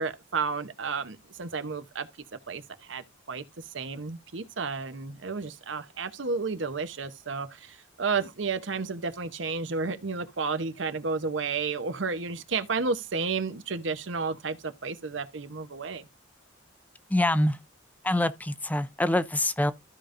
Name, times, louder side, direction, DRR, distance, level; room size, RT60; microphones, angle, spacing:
voice 1, 0.0-2.1 2.5-2.6 2.9-3.4 3.7-16.0, right 4 dB, 65° right, 0.9 m, -32 dB
voice 2, 17.1-17.6 18.0-19.7, left 1 dB, 10° left, 0.4 m, -25 dB
15.0 x 5.1 x 2.6 m
head